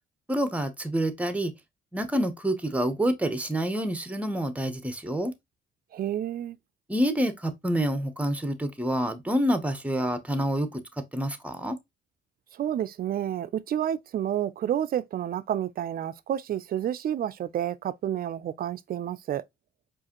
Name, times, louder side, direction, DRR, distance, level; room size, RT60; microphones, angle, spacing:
voice 1, 0.3-1.5 1.9-5.3 6.9-10.8 11.1-11.8, equal, 5° right, 0.7 m, -27 dB
voice 2, 5.9-6.6 12.5-19.4, right 10 dB, 50° right, 0.4 m, -30 dB
4.7 x 2.5 x 2.9 m
cardioid pair, 90°, 20 cm